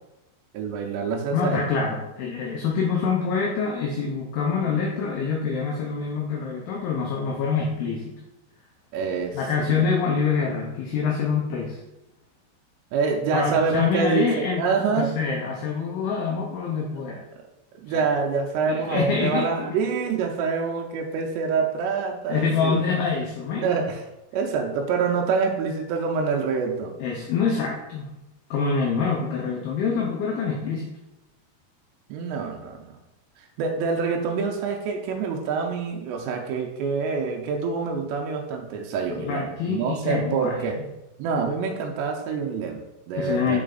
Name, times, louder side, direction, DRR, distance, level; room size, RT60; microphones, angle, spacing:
voice 1, 0.5-1.6 8.9-9.8 12.9-15.2 17.8-22.8 23.6-24.0 24.3-26.9 32.1-33.0 33.4-40.8 41.2-43.6, right 5 dB, 85° right, 2 dB, 2.8 m, -26 dB
voice 2, 1.3-8.2 9.3-11.8 13.3-17.2 17.9-18.0 18.7-19.9 22.3-23.7 27.0-28.1 28.5-30.9 39.1-40.8 43.1-43.6, left 5 dB, 75° left, -1 dB, 2.4 m, -26 dB
7.5 x 4.0 x 3.8 m, 0.93 s
omnidirectional pair, 5.1 m